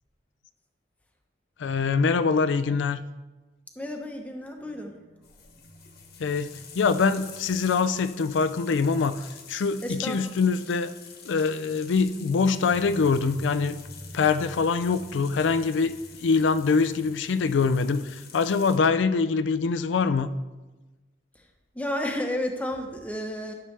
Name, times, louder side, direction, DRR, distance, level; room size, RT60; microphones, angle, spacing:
voice 1, 1.6-3.0 6.2-10.9 11.2-13.8 14.1-15.9 16.2-20.3, left 5 dB, 85° left, 11 dB, 0.4 m, -24 dB
voice 2, 3.8-4.9 9.8-10.2 21.7-23.5, left 1 dB, 10° left, 3 dB, 0.8 m, -31 dB
sound 1, 4.6-10.0 10.3-10.4 11.6-18.2, equal, 35° right, 2.0 m, -49 dB
sound 2, 5.2-18.8, left 6 dB, 55° left, 1.1 m, -47 dB
12.0 x 6.7 x 3.3 m, 1.1 s
head